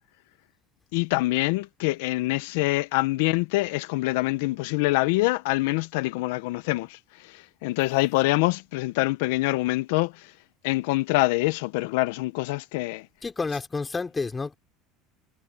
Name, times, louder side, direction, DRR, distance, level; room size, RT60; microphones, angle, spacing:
voice 1, 0.9-10.3 10.6-13.1, left 21 dB, 80° left, 0.6 m, -25 dB
voice 2, 13.2-14.5, left 4 dB, 20° left, 3.3 m, -30 dB
supercardioid pair, 110°, 0 cm